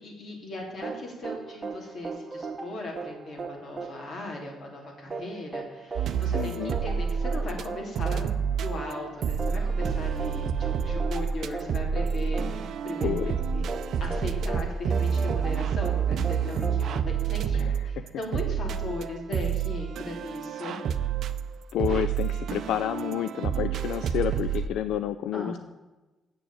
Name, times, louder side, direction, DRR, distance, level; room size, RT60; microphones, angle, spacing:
voice 1, 0.0-8.3 8.6-21.1 25.3-25.6, left 2 dB, 55° left, 0 dB, 3.4 m, -38 dB
sound 1, 0.8-17.7, right 4 dB, 30° right, 1.6 m, -38 dB
sound 2, 6.0-7.7 8.0-24.7, right 7 dB, 70° right, 0.5 m, -29 dB
voice 2, 6.3-6.8 13.0-13.3 17.5-18.1 21.7-25.6, left 10 dB, 85° left, 12 dB, 0.3 m, -30 dB
7.9 x 7.0 x 8.5 m, 1.1 s
cardioid pair, 90°, 0 cm